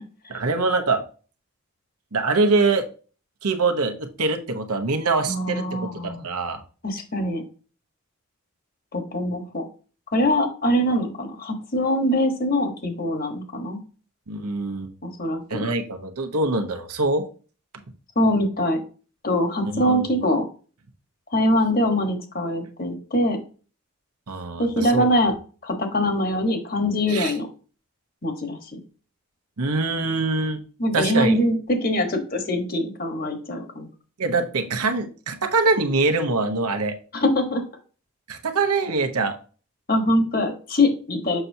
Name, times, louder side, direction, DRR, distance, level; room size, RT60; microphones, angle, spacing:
voice 1, 0.3-1.0 2.1-2.9 3.4-6.6 14.3-14.9 15.5-17.2 19.6-20.1 24.3-25.0 27.1-27.3 29.6-30.6 30.9-31.4 34.2-37.0 38.3-39.4, right 3 dB, 90° right, 6 dB, 0.9 m, -24 dB
voice 2, 5.2-6.3 6.8-7.4 8.9-9.6 10.1-13.8 15.0-15.7 18.2-18.8 19.2-20.4 21.3-23.4 24.6-25.3 25.6-27.5 28.2-28.8 30.8-33.9 37.1-37.6 39.9-41.4, left 1 dB, 40° left, 5 dB, 1.2 m, -23 dB
6.8 x 5.7 x 2.7 m, 0.38 s
head